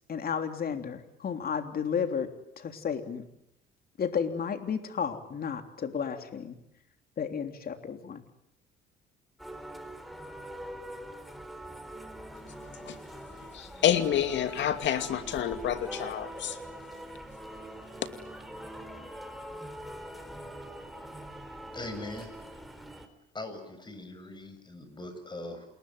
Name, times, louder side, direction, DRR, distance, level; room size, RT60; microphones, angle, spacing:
voice 1, 0.1-3.2 4.0-6.6 7.2-8.2, left 7 dB, 50° left, 7 dB, 3.3 m, -33 dB
sound 1, 9.4-23.1, equal, ahead, 4.2 m, -43 dB
voice 2, 13.5-16.6, left 10 dB, 65° left, 9 dB, 2.6 m, -28 dB
voice 3, 21.7-22.3 23.3-25.7, left 2 dB, 20° left, 9 dB, 7.4 m, -41 dB
28.5 x 21.5 x 9.5 m, 0.79 s
cardioid pair, 90°, 20 cm